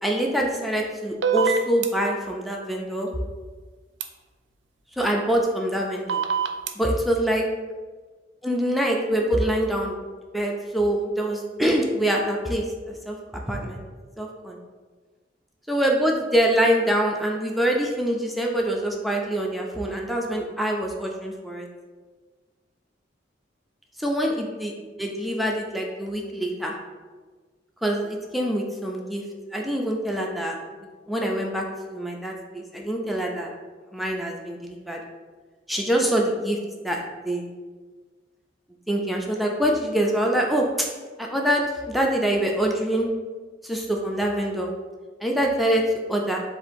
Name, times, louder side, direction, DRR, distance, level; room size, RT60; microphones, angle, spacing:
voice 1, 0.0-3.1 5.0-6.2 6.8-7.5 8.4-10.0 10.3-13.8 14.2-14.6 15.7-21.7 24.0-24.7 25.0-26.7 27.8-29.2 29.5-30.6 31.1-33.5 33.9-35.0 35.7-36.6 36.8-37.5 38.9-40.9 41.2-43.1 43.6-44.7 45.2-46.4, right 1 dB, ahead, -1 dB, 0.3 m, -25 dB
sound 1, 1.2-1.9 4.0-4.1 6.1-6.7, right 6 dB, 70° right, 0.4 m, -23 dB
7.2 x 2.5 x 2.6 m, 1.4 s
head